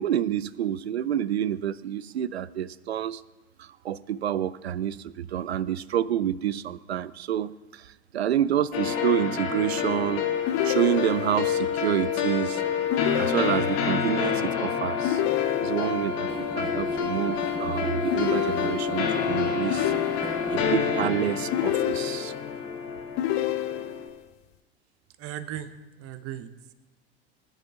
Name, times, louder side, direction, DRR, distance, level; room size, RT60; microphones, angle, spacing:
voice 1, 0.0-3.2 3.6-10.3 10.6-12.6 13.2-15.2 15.6-16.3 16.5-19.9 20.5-22.3, right 10 dB, 90° right, 18 dB, 0.5 m, -28 dB
sound 1, 8.7-24.1, left 6 dB, 70° left, 2.0 m, -28 dB
sound 2, 10.5-11.5 12.9-14.0 15.0-16.1 18.1-19.1 19.7-20.7 21.5-22.5 23.2-24.2, left 13 dB, 55° left, 0.8 m, -29 dB
sound 3, 16.3-21.3, right 4 dB, 15° right, 1.1 m, -39 dB
voice 2, 25.2-25.7 26.0-26.7, right 11 dB, 50° right, 12 dB, 1.1 m, -37 dB
19.5 x 10.0 x 3.7 m, 1.1 s
hypercardioid pair, 75°, 31 cm